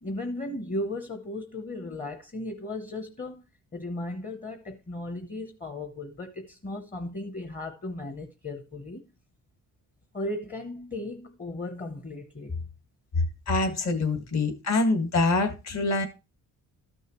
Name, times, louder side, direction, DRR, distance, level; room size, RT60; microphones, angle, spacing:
voice 1, 0.0-3.4 3.7-9.0 10.1-12.7, left 2 dB, 25° left, 0.8 m, -36 dB
voice 2, 13.2-16.1, left 3 dB, 50° left, 1.7 m, -25 dB
13.0 x 6.4 x 3.0 m
cardioid pair, 120°, 34 cm